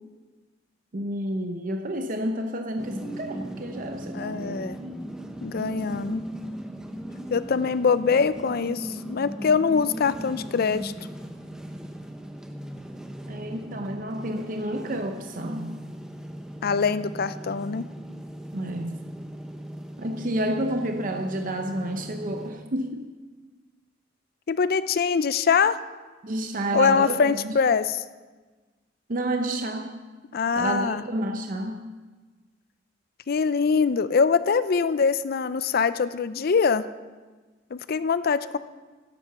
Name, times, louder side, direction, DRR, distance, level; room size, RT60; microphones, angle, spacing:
voice 1, 0.9-4.6 5.6-5.9 13.3-15.8 18.5-19.0 20.0-23.0 26.2-27.6 29.1-30.0 30.5-31.8, right 1 dB, 45° right, 4 dB, 0.7 m, -30 dB
sound 1, 2.8-22.5, equal, 5° right, 0.9 m, -38 dB
voice 2, 4.1-4.8 5.4-6.2 7.3-10.9 16.6-17.9 24.5-25.8 26.7-28.0 30.3-31.0 33.3-36.9 37.7-38.6, left 5 dB, 55° left, 14 dB, 0.5 m, -23 dB
11.5 x 7.7 x 6.9 m, 1.3 s
head